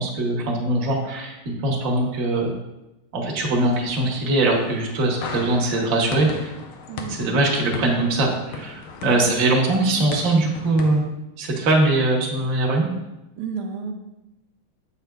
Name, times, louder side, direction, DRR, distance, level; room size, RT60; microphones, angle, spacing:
voice 1, 0.0-2.5 3.1-6.5 7.1-11.1 11.4-12.9, right 2 dB, 50° right, -1 dB, 1.2 m, -21 dB
sound 1, 3.5-11.0, left 4 dB, 85° left, 1.6 m, -37 dB
voice 2, 6.9-7.2 9.2-9.4 13.4-13.9, right 6 dB, 80° right, 3 dB, 1.4 m, -32 dB
8.0 x 5.7 x 2.2 m, 0.97 s
omnidirectional pair, 2.3 m